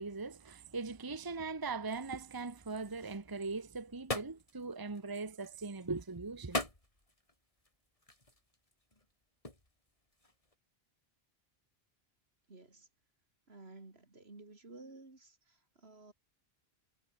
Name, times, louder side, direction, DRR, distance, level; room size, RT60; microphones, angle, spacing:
voice 1, 0.0-6.6, right 4 dB, 20° right, 1.0 m, -40 dB
sound 1, 2.7-10.5, left 1 dB, 35° left, 4.0 m, -44 dB
voice 2, 12.5-12.9 13.5-16.1, right 2 dB, 75° right, 3.6 m, -54 dB
omnidirectional pair, 1.1 m